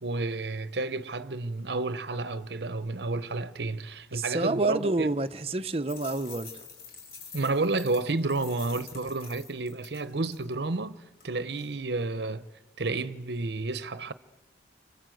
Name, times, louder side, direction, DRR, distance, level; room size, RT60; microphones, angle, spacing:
voice 1, 0.0-5.1 7.3-12.5 12.8-14.1, right 3 dB, 70° right, 0.8 m, -31 dB
voice 2, 4.1-6.5, right 2 dB, 35° right, 0.8 m, -28 dB
sound 1, 5.7-10.5 11.2-11.3 11.5-11.7, left 5 dB, 55° left, 6.0 m, -47 dB
29.5 x 25.0 x 7.8 m
head